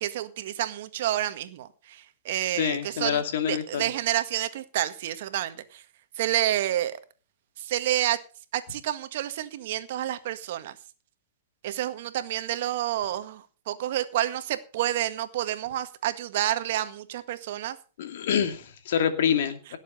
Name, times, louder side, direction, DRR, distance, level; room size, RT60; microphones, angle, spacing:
voice 1, 0.0-5.8 6.2-7.0 7.6-8.2 8.5-10.7 11.6-17.8, right 13 dB, 60° right, 1.7 m, -29 dB
voice 2, 2.6-3.9 18.0-19.8, left 8 dB, 70° left, 2.6 m, -26 dB
17.5 x 7.4 x 5.6 m
hypercardioid pair, 130°, 0 cm